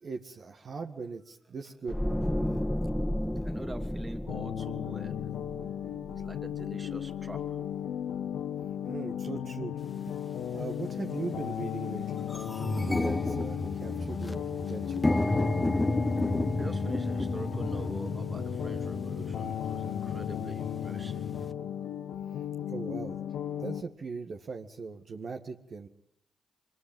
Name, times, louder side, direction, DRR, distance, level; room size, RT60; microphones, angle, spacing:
voice 1, 0.0-2.0 8.9-9.8 10.5-12.3 12.5-15.1 22.7-23.2 23.6-25.9, right 4 dB, 60° right, 3 dB, 1.8 m, -39 dB
sound 1, 1.9-7.0 7.2-7.5, left 1 dB, 5° left, 2.0 m, -33 dB
voice 2, 3.3-5.2 6.2-7.4 16.6-21.4, right 2 dB, 30° right, 8 dB, 2.8 m, -44 dB
sound 2, 4.3-23.8, left 10 dB, 80° left, 1.4 m, -35 dB
sound 3, 9.9-10.0 10.8-11.0 11.4-11.5 11.8-21.5, left 2 dB, 20° left, 1.2 m, -32 dB
24.0 x 21.5 x 9.3 m, 0.70 s
hypercardioid pair, 40°, 0 cm